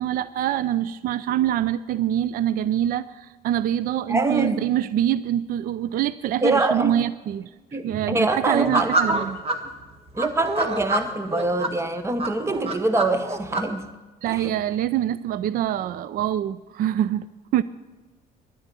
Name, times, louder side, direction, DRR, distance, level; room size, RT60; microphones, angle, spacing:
voice 1, 0.0-9.4 14.2-17.6, right 11 dB, 60° right, 17 dB, 0.4 m, -25 dB
voice 2, 4.1-4.7 6.4-7.0 7.7-9.2 10.1-13.9 14.3-14.5, right 2 dB, 15° right, 10 dB, 1.0 m, -24 dB
sound 1, 8.5-9.6 10.2-11.7 12.2-13.6, right 2 dB, 35° right, 1.5 m, -26 dB
11.5 x 9.9 x 8.2 m, 1.3 s
cardioid pair, 110°, 17 cm